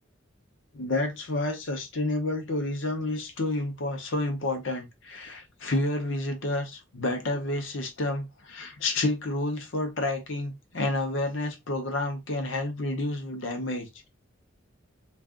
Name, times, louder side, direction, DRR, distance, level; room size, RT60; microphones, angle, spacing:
voice 1, 0.7-14.1, left 2 dB, 70° left, 0.8 m, -30 dB
2.5 x 2.5 x 3.6 m
head